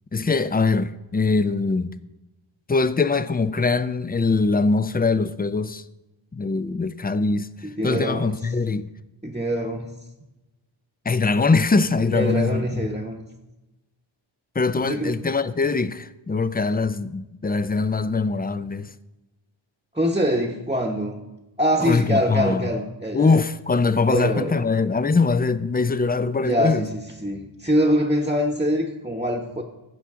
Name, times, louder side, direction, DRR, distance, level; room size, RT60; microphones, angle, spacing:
voice 1, 0.1-1.9 2.7-5.8 6.3-7.5 7.8-8.9 11.1-12.9 14.6-18.9 21.8-22.7 23.1-26.9, left 4 dB, 20° left, 0.4 m, -22 dB
voice 2, 7.6-8.4 9.2-9.9 12.1-13.3 14.8-15.2 19.9-21.2 21.6-23.4 24.1-24.7 26.4-29.6, equal, 10° right, 0.9 m, -24 dB
15.0 x 5.7 x 3.6 m
wide cardioid pair, 50°, 48 cm